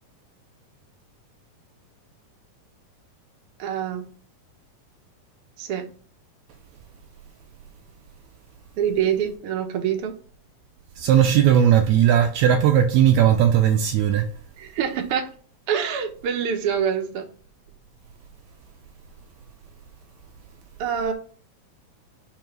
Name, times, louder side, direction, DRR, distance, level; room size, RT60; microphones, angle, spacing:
voice 1, 3.6-4.1 5.6-5.9 8.8-10.1 14.6-15.3 15.7-17.2 20.8-21.1, right 8 dB, 60° right, 1.5 m, -25 dB
voice 2, 11.0-14.2, right 9 dB, 85° right, 1.6 m, -17 dB
5.3 x 4.6 x 5.3 m
omnidirectional pair, 3.8 m